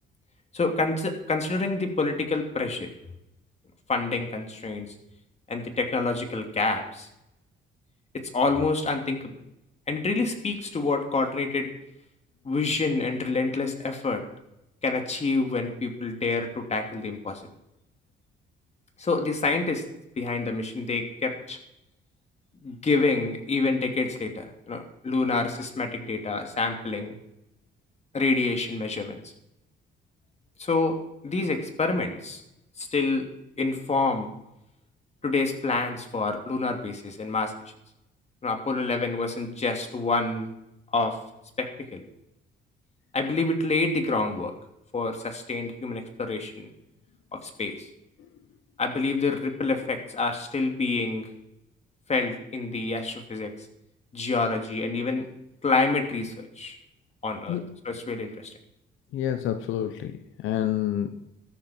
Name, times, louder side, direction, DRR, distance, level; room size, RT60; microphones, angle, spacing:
voice 1, 0.5-2.9 3.9-4.9 5.5-7.1 8.1-9.3 9.9-11.7 12.4-14.2 14.8-17.4 19.0-19.8 20.2-21.6 22.6-27.2 28.1-29.2 30.6-31.0 31.2-32.4 32.8-33.3 33.6-34.3 35.2-37.5 38.4-40.5 40.9-41.2 41.6-42.0 43.1-44.5 44.9-46.7 47.3-47.9 48.8-51.3 52.1-53.5 54.1-55.3 55.6-56.8 57.2-57.6 57.8-58.5, left 3 dB, 35° left, 4 dB, 2.9 m, -27 dB
voice 2, 59.1-61.1, left 11 dB, 85° left, 8 dB, 1.1 m, -28 dB
16.5 x 13.5 x 4.6 m, 0.85 s
cardioid pair, 90°, 20 cm